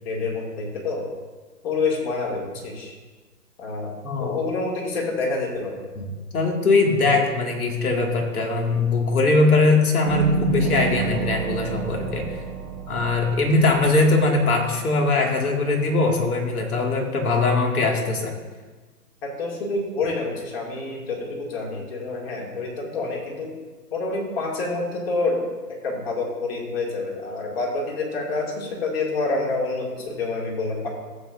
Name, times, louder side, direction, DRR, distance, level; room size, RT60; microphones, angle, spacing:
voice 1, 0.0-1.0 1.6-2.9 3.6-3.9 4.2-5.8 19.2-23.5 23.9-25.4 25.8-30.9, left 3 dB, 35° left, -1 dB, 2.7 m, -27 dB
voice 2, 4.0-4.4 6.0-6.1 6.3-12.4 12.9-18.3, left 3 dB, 60° left, 1 dB, 2.4 m, -21 dB
sound 1, 10.0-15.3, right 6 dB, 10° right, 0.6 m, -30 dB
15.0 x 7.8 x 2.7 m, 1.3 s
figure-of-eight pair, 135°, 50 cm